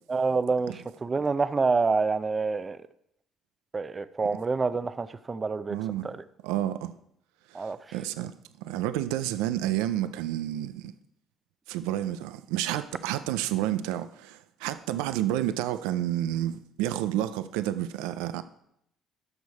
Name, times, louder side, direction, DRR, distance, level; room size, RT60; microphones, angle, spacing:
voice 1, 0.1-2.9 3.7-5.8 6.0-6.2 7.5-7.9, right 4 dB, 30° right, 0.6 m, -27 dB
voice 2, 5.7-6.1 6.4-6.9 7.5-10.9 11.7-18.4, right 13 dB, 90° right, 0.4 m, -30 dB
12.0 x 6.3 x 4.1 m
supercardioid pair, 70°, 0 cm